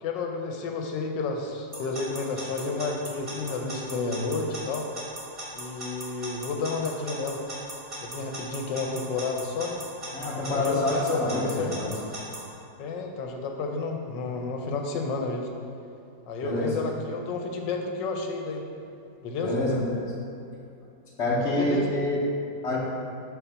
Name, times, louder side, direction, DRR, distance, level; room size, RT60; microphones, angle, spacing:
voice 1, 0.0-4.9 5.5-7.4 8.0-9.8 10.5-11.3 11.6-11.7 12.8-15.5 16.3-18.7 19.2-19.6 21.4-21.9, left 3 dB, 85° left, 3 dB, 1.4 m, -31 dB
Alarm / Clock, 1.7-12.4, right 1 dB, 20° right, 1.5 m, -37 dB
voice 2, 10.1-11.9 16.4-16.7 19.4-20.1 21.2-22.2 22.6-22.8, left 1 dB, 45° left, -4 dB, 1.1 m, -27 dB
5.8 x 3.9 x 5.7 m, 2.6 s
omnidirectional pair, 1.9 m